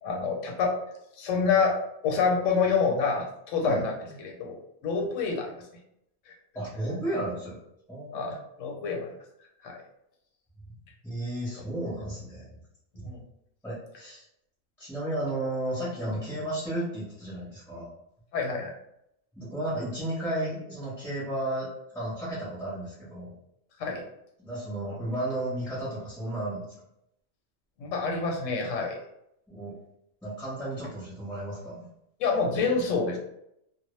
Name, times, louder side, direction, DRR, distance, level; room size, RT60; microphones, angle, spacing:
voice 1, 0.0-0.8 1.2-1.8 2.0-4.6 4.8-5.5 6.3-6.4 8.1-9.1 9.6-9.8 13.0-13.2 18.3-18.7 23.8-24.0 27.8-29.0 32.2-33.2, left 5 dB, 85° left, 1 dB, 1.0 m, -27 dB
voice 2, 3.6-4.1 6.5-7.6 7.9-8.3 11.0-12.4 12.9-13.1 13.6-14.2 14.8-17.9 19.4-23.3 24.4-26.6 29.5-29.8 30.2-31.9, right 1 dB, 5° left, -10 dB, 0.5 m, -33 dB
2.0 x 2.0 x 3.0 m, 0.78 s
omnidirectional pair, 1.3 m